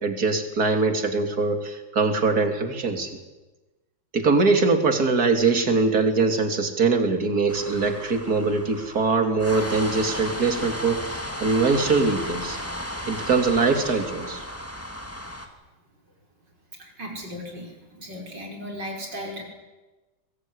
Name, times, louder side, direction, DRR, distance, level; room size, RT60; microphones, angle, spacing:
voice 1, 0.0-3.2 4.1-12.6 13.1-14.4, right 4 dB, 55° right, 6 dB, 3.3 m, -22 dB
sound 1, 7.5-15.5, equal, 5° left, 2.6 m, -34 dB
voice 2, 16.8-19.4, equal, 75° right, 1 dB, 6.4 m, -36 dB
23.5 x 22.5 x 9.8 m, 1.2 s
omnidirectional pair, 1.9 m